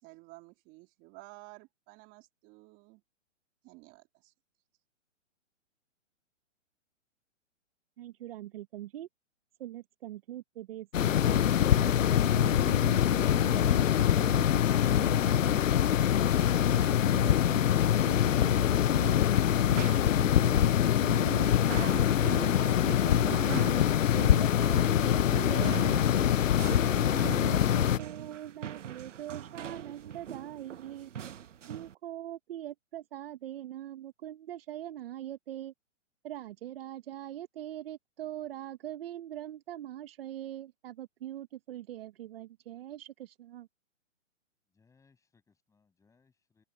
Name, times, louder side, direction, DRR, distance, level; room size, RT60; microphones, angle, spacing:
voice 1, 0.0-3.0 3.6-4.3, right 23 dB, 30° right, 3.9 m, -53 dB
voice 2, 8.0-9.1 9.6-15.8 16.7-19.3 19.7-23.9 24.1-26.3 26.8-31.1 31.7-35.7 36.2-43.7, right 12 dB, 50° right, 1.3 m, -42 dB
sound 1, 10.9-28.0, left 10 dB, 80° left, 0.8 m, -24 dB
sound 2, 19.1-31.9, right 9 dB, 70° right, 1.4 m, -43 dB
voice 3, 44.7-46.6, left 5 dB, 10° left, 7.9 m, -68 dB
hypercardioid pair, 145°, 38 cm